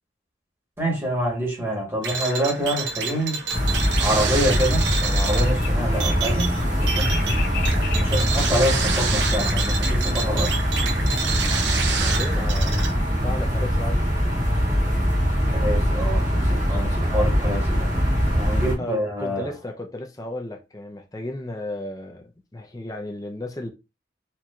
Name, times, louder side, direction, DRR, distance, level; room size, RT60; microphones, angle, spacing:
voice 1, 0.8-3.4 4.0-6.6 7.0-7.2 7.9-10.5 15.5-17.9 18.3-19.5, equal, 15° right, 1.2 m, -26 dB
sound 1, 2.0-12.9, right 5 dB, 75° right, 0.7 m, -28 dB
sound 2, 2.5-9.6, left 6 dB, 50° left, 1.0 m, -39 dB
sound 3, 3.5-18.7, equal, 45° right, 1.4 m, -22 dB
voice 2, 11.8-14.0 18.8-23.7, left 1 dB, 20° left, 0.6 m, -34 dB
4.4 x 2.8 x 2.4 m
head